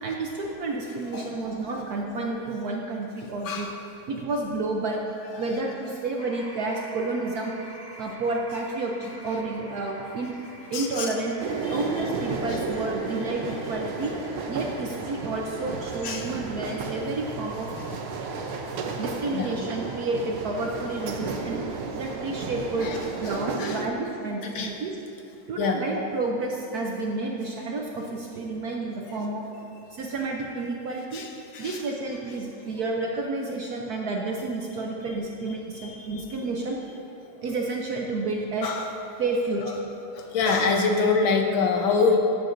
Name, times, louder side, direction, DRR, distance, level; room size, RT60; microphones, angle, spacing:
voice 1, 0.0-3.7 4.1-5.0 5.4-7.5 8.0-10.3 10.7-11.3 11.7-14.2 14.5-17.7 19.0-21.6 21.9-22.9 23.2-24.9 25.5-29.4 29.9-31.2 31.6-36.8 37.4-38.7 39.2-39.8, right 3 dB, 65° right, -1 dB, 1.0 m, -30 dB
sound 1, 6.2-23.3, equal, 20° left, 0.4 m, -48 dB
voice 2, 10.7-11.1 11.6-11.8 12.5-12.6 15.1-15.2 16.0-16.3 17.8-18.0 19.3-19.5 22.8-23.9 24.4-24.7 25.6-25.8 29.9-30.0 31.1-31.8 32.6-32.7 35.7-36.2 37.2-37.4 38.6-38.9 39.6-39.8 40.1-42.2, left 4 dB, 75° left, 2 dB, 1.6 m, -27 dB
sound 2, 11.4-23.9, right 4 dB, 85° right, 1.6 m, -33 dB
15.5 x 8.0 x 2.6 m, 2.7 s
omnidirectional pair, 2.3 m